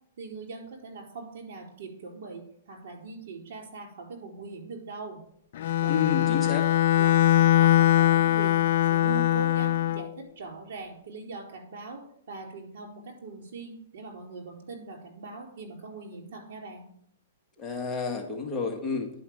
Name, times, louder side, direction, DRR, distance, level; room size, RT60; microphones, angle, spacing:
voice 1, 0.2-5.2 5.8-6.5 7.0-8.6 8.9-12.0 12.3-16.9, right 4 dB, 60° right, 1 dB, 4.3 m, -41 dB
Bowed string instrument, 5.6-10.1, left 12 dB, 60° left, 0.3 m, -22 dB
voice 2, 5.9-6.7 17.6-19.1, left 5 dB, 15° left, 1 dB, 1.6 m, -30 dB
10.5 x 5.5 x 7.7 m, 0.67 s
hypercardioid pair, 145°, 0 cm